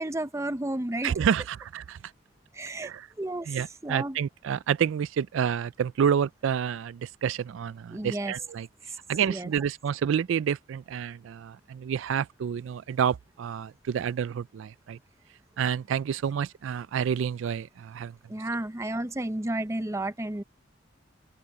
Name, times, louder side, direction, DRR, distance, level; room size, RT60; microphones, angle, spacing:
voice 1, 0.0-1.1 2.5-2.9 3.2-4.2 7.9-8.3 8.9-9.0 9.3-9.5 18.3-20.4, right 1 dB, 15° right, 0.6 m, -32 dB
voice 2, 1.0-2.0 2.8-3.1 3.5-8.7 9.1-15.0 15.6-18.1, right 8 dB, 70° right, 0.3 m, -29 dB
open air
head